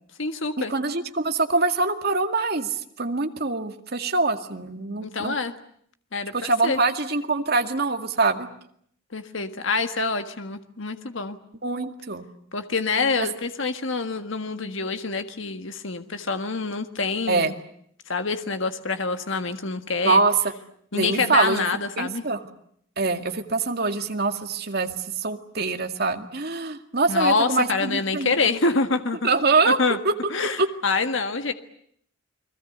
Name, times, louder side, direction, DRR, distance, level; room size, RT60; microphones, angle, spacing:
voice 1, 0.2-0.7 5.0-5.5 6.1-6.8 9.1-11.4 12.5-17.5 18.1-20.2 20.9-22.2 27.1-29.3 29.6-30.0 30.3-31.5, left 4 dB, 65° left, 8 dB, 1.6 m, -26 dB
voice 2, 0.7-2.7 3.0-5.4 6.3-8.5 11.6-12.3 17.3-17.5 20.0-20.3 20.9-21.6 22.0-22.4 23.0-24.9 25.2-28.3 29.2-29.8 30.0-30.1 30.6-30.7, right 3 dB, 50° right, 6 dB, 2.1 m, -24 dB
30.0 x 21.0 x 8.1 m, 0.67 s
head